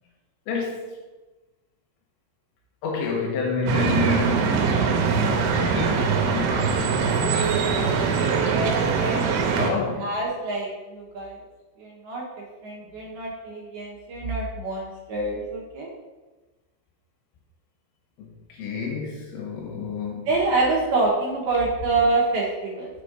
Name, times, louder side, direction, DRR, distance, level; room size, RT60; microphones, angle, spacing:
voice 1, 0.5-1.0 2.8-5.3 5.7-8.6 9.1-10.2 12.8-13.0 18.2-20.3, left 5 dB, 75° left, -1 dB, 3.5 m, -31 dB
sound 1, 3.7-9.7, right 5 dB, 85° right, 3.1 m, -22 dB
voice 2, 8.5-11.4 11.8-12.3 12.6-15.9 20.3-22.9, right 3 dB, 70° right, -4 dB, 2.8 m, -26 dB
7.2 x 4.2 x 5.0 m, 1.2 s
omnidirectional pair, 5.3 m